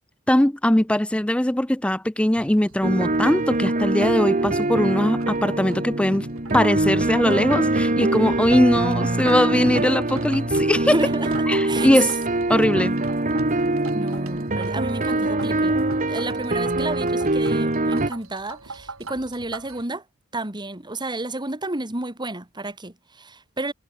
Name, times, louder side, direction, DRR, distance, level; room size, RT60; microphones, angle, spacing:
voice 1, 0.3-6.3 6.5-10.9 11.5-12.2 12.5-13.0, left 1 dB, 5° left, 0.5 m, -20 dB
sound 1, 2.3-19.8, right 2 dB, 75° right, 3.7 m, -41 dB
sound 2, 2.8-18.1, right 2 dB, 40° right, 2.4 m, -23 dB
voice 2, 10.9-11.9 13.9-15.8 16.1-20.0 20.3-23.7, right 2 dB, 20° right, 2.2 m, -31 dB
head